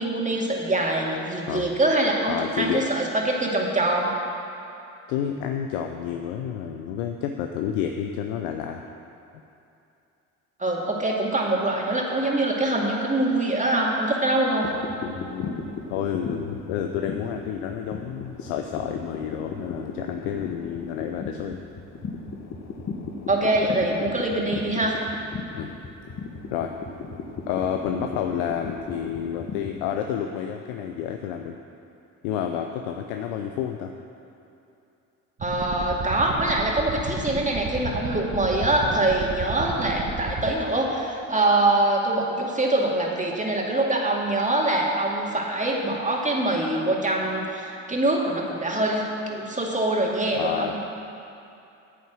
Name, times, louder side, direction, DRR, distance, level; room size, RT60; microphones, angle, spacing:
voice 1, 0.0-4.1 10.6-14.7 23.3-25.0 35.4-50.8, right 2 dB, 20° right, -1 dB, 2.2 m, -24 dB
voice 2, 2.3-2.9 5.1-8.8 15.0-21.6 25.5-25.7 26.5-26.7 27.5-31.6 32.2-33.9 50.3-50.8, left 9 dB, 80° left, 4 dB, 0.6 m, -30 dB
sound 1, 14.6-29.9, left 4 dB, 45° left, 1.4 m, -36 dB
sound 2, 35.4-40.5, right 3 dB, 40° right, 1.4 m, -32 dB
9.3 x 8.3 x 6.3 m, 2.7 s
hypercardioid pair, 55°, 37 cm